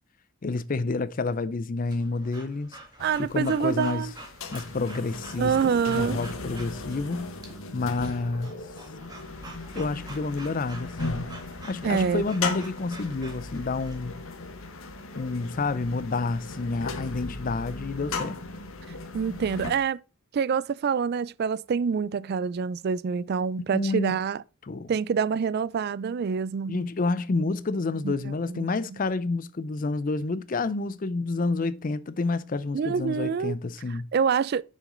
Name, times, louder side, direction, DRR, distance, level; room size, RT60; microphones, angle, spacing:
voice 1, 0.4-2.8 3.2-4.1 4.5-5.5 5.9-7.3 7.7-8.5 9.7-11.3 11.6-14.1 15.2-18.4 23.7-24.2 24.7-24.9 26.7-34.1, left 3 dB, 40° left, 0.5 m, -29 dB
Breathing / Dog, 1.9-14.0, right 2 dB, 20° right, 1.7 m, -47 dB
sound 1, 3.0-19.7, left 3 dB, 75° left, 1.2 m, -37 dB
voice 2, 3.0-4.1 5.4-6.2 11.8-12.2 19.1-20.0 20.3-24.4 24.9-26.8 28.0-28.7 32.7-33.6 34.1-34.6, right 6 dB, 50° right, 0.3 m, -26 dB
6.6 x 6.2 x 3.8 m
head